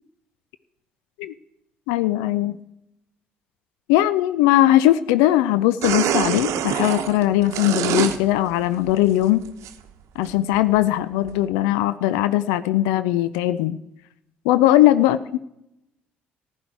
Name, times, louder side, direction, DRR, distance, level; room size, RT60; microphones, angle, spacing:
voice 1, 1.9-2.6 3.9-9.4 10.2-13.8 14.5-15.4, left 14 dB, 70° left, 15 dB, 0.4 m, -19 dB
sound 1, 5.8-8.2 8.6-9.7 10.2-10.3 10.7-10.8 11.3-11.4, right 9 dB, 60° right, 0.9 m, -24 dB
15.0 x 11.0 x 4.6 m, 0.83 s
figure-of-eight pair, 50°, 6 cm